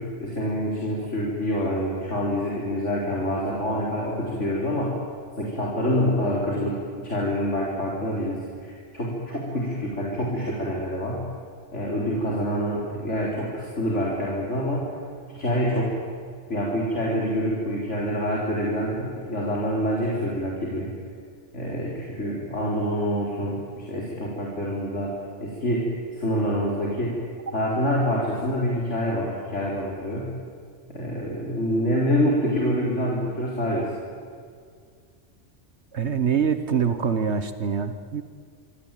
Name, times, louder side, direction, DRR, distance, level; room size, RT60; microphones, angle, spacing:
voice 1, 0.0-5.0 5.4-11.3 11.7-14.9 15.4-16.0 16.5-20.9 21.5-25.1 25.4-27.2 27.5-30.3 30.9-33.9, equal, 75° left, -3 dB, 4.6 m, -26 dB
voice 2, 35.9-38.2, right 7 dB, 65° right, 10 dB, 1.4 m, -24 dB
26.0 x 25.0 x 9.2 m, 2.1 s
omnidirectional pair, 1.2 m